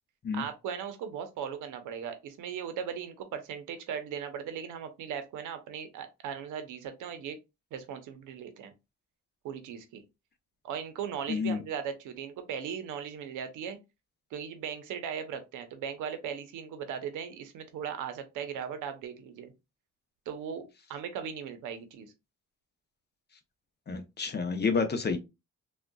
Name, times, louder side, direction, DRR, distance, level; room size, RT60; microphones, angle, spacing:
voice 1, 0.3-7.4 7.7-8.7 9.4-10.0 10.6-13.8 14.3-19.5 20.3-22.1, right 8 dB, 85° right, 0.7 m, -38 dB
voice 2, 11.3-11.6 23.9-25.2, left 5 dB, 35° left, 0.7 m, -29 dB
3.6 x 2.3 x 2.2 m
cardioid pair, 90°, 30 cm